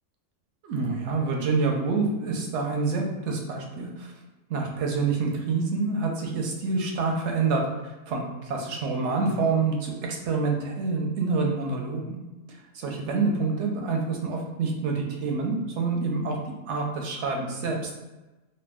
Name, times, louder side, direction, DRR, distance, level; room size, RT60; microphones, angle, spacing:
voice 1, 0.6-4.1 4.5-12.2 12.5-16.4 16.6-17.8, right 4 dB, 70° right, 1 dB, 0.8 m, -27 dB
2.5 x 2.0 x 3.4 m, 1.1 s
omnidirectional pair, 1.3 m